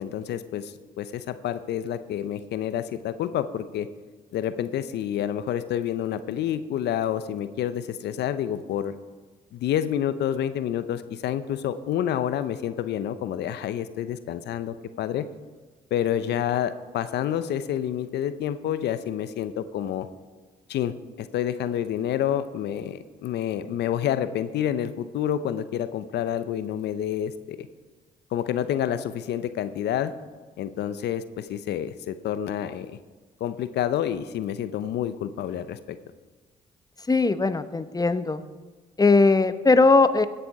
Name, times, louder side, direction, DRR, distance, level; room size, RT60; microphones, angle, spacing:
voice 1, 0.0-3.9 4.3-8.9 9.5-15.3 15.9-20.1 20.7-27.7 28.3-30.1 30.6-33.0 33.4-36.0, left 10 dB, 70° left, 13 dB, 0.7 m, -28 dB
voice 2, 37.1-38.4 39.0-40.3, left 3 dB, 20° left, 12 dB, 0.9 m, -19 dB
16.5 x 6.9 x 4.8 m, 1.4 s
supercardioid pair, 55°, 18 cm